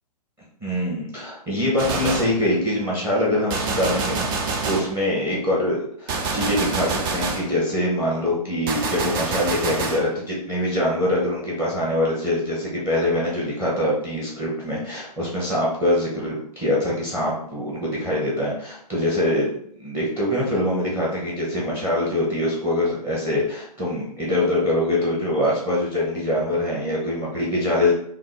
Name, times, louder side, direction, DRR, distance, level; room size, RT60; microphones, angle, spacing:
voice 1, 0.6-19.5 19.8-27.9, left 1 dB, 10° right, -5 dB, 1.0 m, -24 dB
Gunshot gunfire, 1.8-2.4 3.5-5.0 6.1-7.5 8.7-10.1, right 3 dB, 35° right, 0.6 m, -26 dB
5.6 x 2.1 x 3.2 m, 0.66 s
figure-of-eight pair, 120°, 20 cm